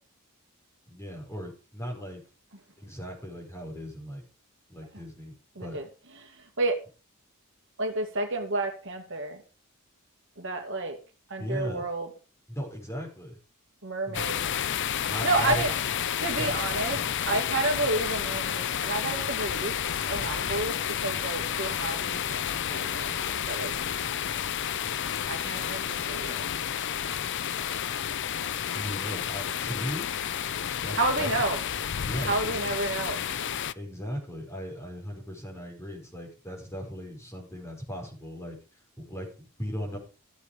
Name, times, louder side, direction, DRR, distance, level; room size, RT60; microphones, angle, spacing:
voice 1, 0.9-2.2 2.8-4.2 4.7-5.8 11.4-11.8 12.5-13.4 14.1-14.3 15.0-15.6 16.4-16.6 16.9-17.1 28.7-30.1 30.5-31.3 32.1-32.5 33.8-38.6 39.0-40.0, equal, 15° left, 0 dB, 5.6 m, -37 dB
voice 2, 6.2-6.8 7.8-9.4 10.4-11.0 11.3-12.1 13.8-14.4 15.0-15.7 16.2-17.0 17.3-19.7 20.1-20.7 21.0-23.7 25.3-26.4 30.9-31.6 32.2-33.3, right 2 dB, 60° right, 4 dB, 2.2 m, -30 dB
sound 1, 14.1-33.7, left 9 dB, 55° left, 0.6 m, -31 dB
14.0 x 8.1 x 5.2 m, 0.35 s
head